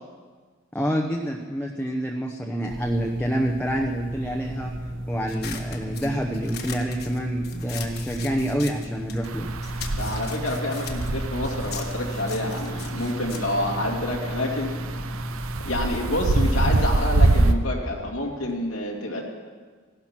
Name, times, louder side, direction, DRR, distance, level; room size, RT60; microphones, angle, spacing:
voice 1, 0.7-4.7 5.1-9.5, equal, 5° left, 0 dB, 0.8 m, -27 dB
sound 1, 2.7-15.6, right 1 dB, 60° right, 2.3 m, -33 dB
sound 2, 5.3-9.3 9.6-14.4, left 7 dB, 50° left, 1.4 m, -40 dB
sound 3, 9.2-17.5, right 2 dB, 85° right, 0.8 m, -26 dB
voice 2, 10.0-14.7 15.6-19.2, left 1 dB, 90° left, -2 dB, 2.3 m, -28 dB
16.0 x 12.0 x 6.1 m, 1.5 s
head